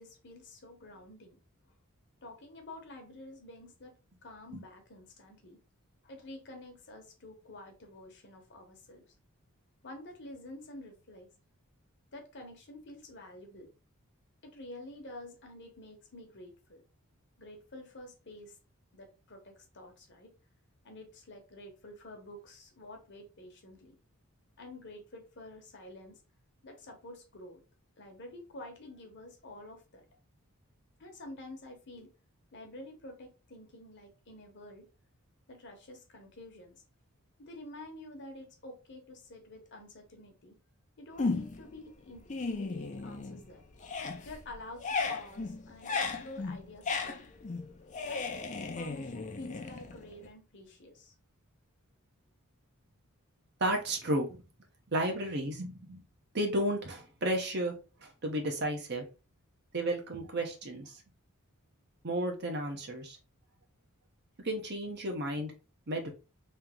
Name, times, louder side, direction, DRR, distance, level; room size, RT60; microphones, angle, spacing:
voice 1, 0.0-1.4 1.7-1.8 2.2-5.6 6.0-9.1 9.8-11.3 12.1-13.7 14.4-16.8 17.4-18.6 18.9-20.3 20.8-24.0 24.6-26.2 26.6-27.6 28.0-30.1 31.0-32.1 32.5-34.9 35.5-36.8 37.4-40.6 41.0-43.7 44.1-47.3 48.0-48.3 48.5-51.1, left 1 dB, 50° left, 1.0 m, -49 dB
sound 1, 41.2-41.7 42.1-43.5 43.8-50.3, left 4 dB, 35° left, 0.5 m, -36 dB
voice 2, 53.6-54.4 54.9-56.0 56.3-59.1 59.7-61.0 62.0-63.2 64.4-65.5 65.9-66.1, right 1 dB, 50° right, 1.0 m, -33 dB
3.3 x 2.9 x 3.6 m
head